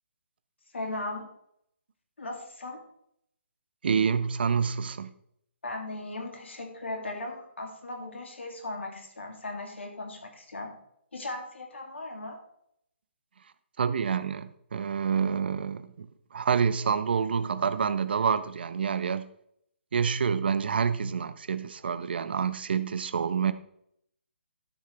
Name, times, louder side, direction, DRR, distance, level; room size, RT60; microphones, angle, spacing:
voice 1, 0.7-1.3 2.2-2.8 5.6-10.7 11.1-12.4, left 2 dB, 70° left, 2 dB, 2.5 m, -37 dB
voice 2, 3.8-5.1 13.8-16.1 16.3-19.3 19.9-23.5, right 6 dB, 55° right, 13 dB, 0.7 m, -27 dB
13.0 x 6.5 x 3.3 m, 0.71 s
figure-of-eight pair, 140°, 7 cm